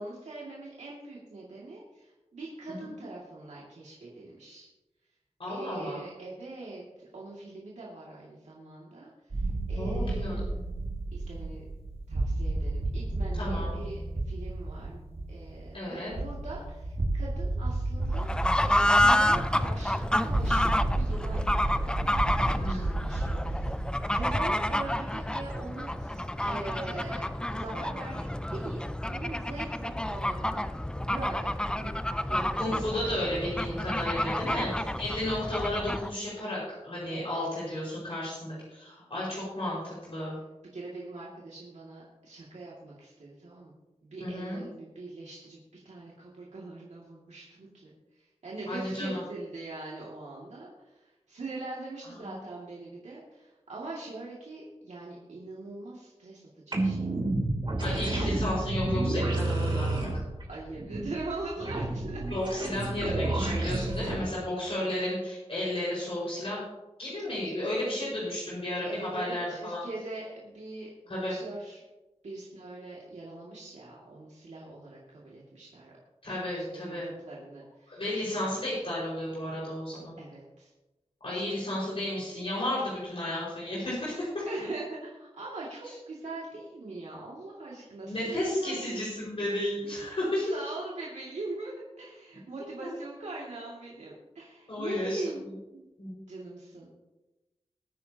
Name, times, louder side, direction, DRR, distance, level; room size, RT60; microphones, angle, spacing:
voice 1, 0.0-4.7 5.5-10.5 11.1-11.6 12.1-15.0 15.3-18.3 18.6-23.7 24.1-30.7 31.0-31.9 32.3-32.9 33.2-33.3 34.5-34.7 37.1-37.5 40.6-43.7 44.0-57.1 58.1-58.4 60.5-62.2 63.9-64.0 64.6-64.9 67.4-67.6 68.8-71.8 72.2-75.9 76.5-78.0 80.2-80.7 81.3-81.9 84.5-89.1 90.5-95.5 95.7-95.8 96.2-96.9, right 2 dB, 80° right, -5 dB, 2.4 m, -42 dB
voice 2, 5.4-6.0 9.7-10.3 13.3-13.7 15.7-16.1 22.6-22.9 32.6-34.7 35.0-40.4 44.2-44.6 48.7-49.2 52.2-52.3 57.8-60.1 62.3-66.7 67.0-69.8 71.1-71.3 76.2-77.1 77.9-80.1 81.2-84.5 88.0-90.5 92.8-92.9 94.7-95.2 96.0-96.2, left 1 dB, 55° left, -7 dB, 5.3 m, -33 dB
sound 1, 9.3-25.2, right 2 dB, 60° right, 2.2 m, -32 dB
Fowl / Bird, 18.1-36.1, left 1 dB, 5° left, 0.5 m, -29 dB
sound 2, 56.7-64.2, right 2 dB, 45° right, 3.0 m, -30 dB
21.5 x 9.5 x 2.9 m, 1.1 s
wide cardioid pair, 90°, 12 cm